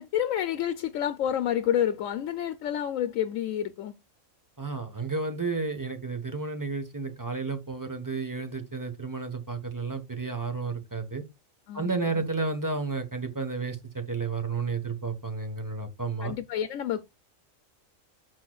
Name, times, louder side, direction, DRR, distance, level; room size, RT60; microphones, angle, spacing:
voice 1, 0.0-3.9 11.7-12.3 16.2-17.0, left 10 dB, 80° left, 1.0 m, -29 dB
voice 2, 4.6-11.2 11.7-16.3, right 4 dB, 15° right, 1.0 m, -32 dB
12.5 x 4.4 x 2.3 m
omnidirectional pair, 1.3 m